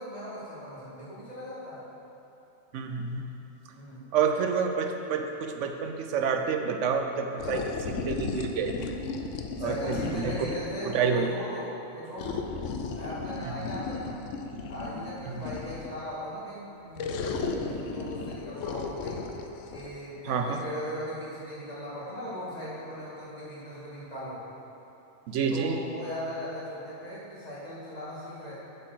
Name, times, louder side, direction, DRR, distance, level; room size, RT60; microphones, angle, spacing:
voice 1, 0.0-1.8 3.7-4.1 9.6-12.5 12.9-14.2 14.7-19.3 19.7-24.4 25.5-28.5, equal, 35° left, -9 dB, 2.1 m, -38 dB
voice 2, 2.7-3.3 4.1-8.8 9.6-10.5 10.8-11.3 15.3-15.4 20.2-20.6 25.3-25.8, right 6 dB, 75° right, 5 dB, 0.9 m, -28 dB
sound 1, 7.4-10.8 12.2-16.0 17.0-19.9, left 4 dB, 80° left, 0.9 m, -35 dB
7.7 x 5.1 x 6.0 m, 3.0 s
omnidirectional pair, 1.3 m